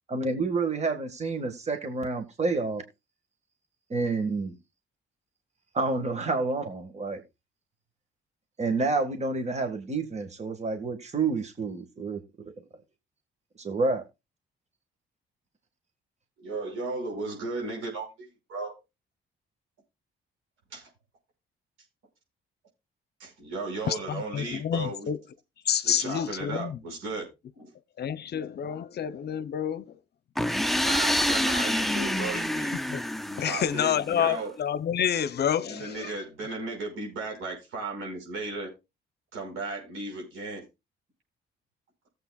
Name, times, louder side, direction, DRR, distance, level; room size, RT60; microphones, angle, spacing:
voice 1, 0.1-2.8 3.9-4.5 5.7-7.2 8.6-12.5 13.6-14.0, right 3 dB, 35° right, 1.7 m, -29 dB
voice 2, 16.4-18.7 20.7-20.9 23.2-25.1 25.8-27.3 27.5-27.7 30.8-32.8 33.4-34.5 35.7-38.7 39.3-40.6, right 3 dB, 90° right, 5.7 m, -35 dB
voice 3, 23.8-25.2 25.6-26.8 28.0-30.0 32.9-33.0 33.4-36.1, left 9 dB, 55° left, 0.8 m, -28 dB
sound 1, 30.4-34.1, left 1 dB, ahead, 0.6 m, -27 dB
17.5 x 7.8 x 2.4 m
cardioid pair, 90°, 20 cm